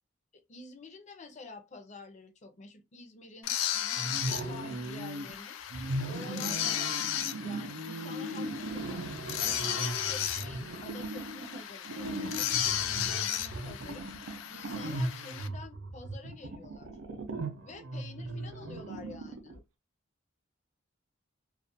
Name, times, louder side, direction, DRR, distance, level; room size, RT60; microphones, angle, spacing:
voice 1, 0.3-5.6 6.1-6.9 7.4-9.0 9.3-16.9 17.6-19.6, left 3 dB, 35° left, 0.5 m, -49 dB
sound 1, 3.4-15.5, left 10 dB, 90° left, 0.4 m, -35 dB
sound 2, 4.0-5.3 5.7-19.6, right 2 dB, 85° right, 0.5 m, -38 dB
2.4 x 2.1 x 2.5 m
head